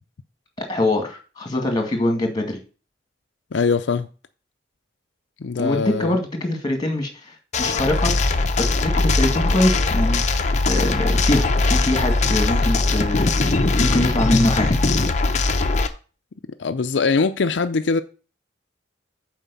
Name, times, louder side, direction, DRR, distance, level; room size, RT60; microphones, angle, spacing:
voice 1, 0.7-2.6 5.6-8.1 8.6-10.2 10.7-14.7, left 1 dB, 25° left, 2.1 m, -23 dB
voice 2, 3.5-4.1 5.4-6.2 16.6-18.0, left 4 dB, 75° left, 0.5 m, -22 dB
sound 1, 7.5-15.9, left 3 dB, 40° left, 0.7 m, -20 dB
7.4 x 4.7 x 6.9 m
head